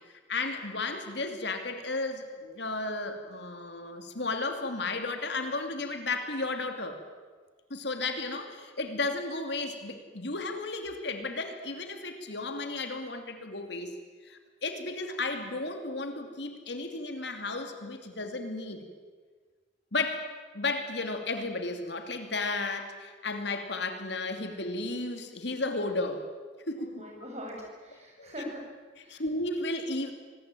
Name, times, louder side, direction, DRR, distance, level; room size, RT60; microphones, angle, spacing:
voice 1, 0.3-7.0 7.7-13.9 14.2-18.9 19.9-26.2 26.7-27.1 28.2-28.3 29.1-30.1, left 3 dB, 60° left, 6 dB, 2.7 m, -34 dB
voice 2, 26.8-28.6 29.0-29.2, equal, 35° right, -1 dB, 7.6 m, -42 dB
25.0 x 20.0 x 9.1 m, 1.5 s
head